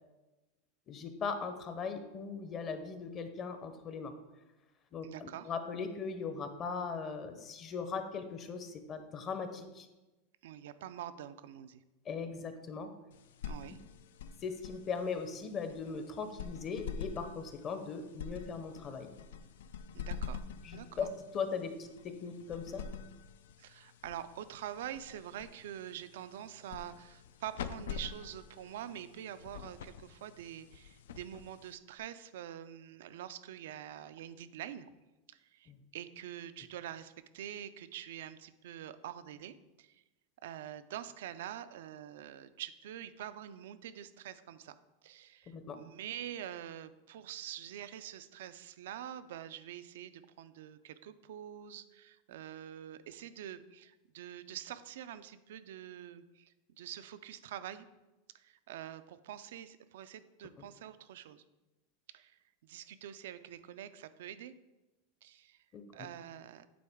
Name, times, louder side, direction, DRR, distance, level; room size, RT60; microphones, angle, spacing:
voice 1, 0.9-4.1 4.9-9.9 12.0-12.9 14.4-19.1 20.6-21.1 21.3-22.8 35.7-35.8 45.5-45.8 65.7-66.1, left 5 dB, 35° left, 8 dB, 0.7 m, -39 dB
voice 2, 5.0-5.5 10.4-11.8 13.5-13.8 19.9-20.5 20.7-21.1 23.6-34.9 35.3-40.0 40.4-44.8 45.0-57.9 58.3-61.4 62.1-64.5 65.2-65.6 65.9-66.7, right 11 dB, 75° right, 13 dB, 0.3 m, -46 dB
sound 1, 13.1-32.0, left 6 dB, 85° left, 0.3 m, -47 dB
8.5 x 3.8 x 3.5 m, 1.1 s
supercardioid pair, 120°, 0 cm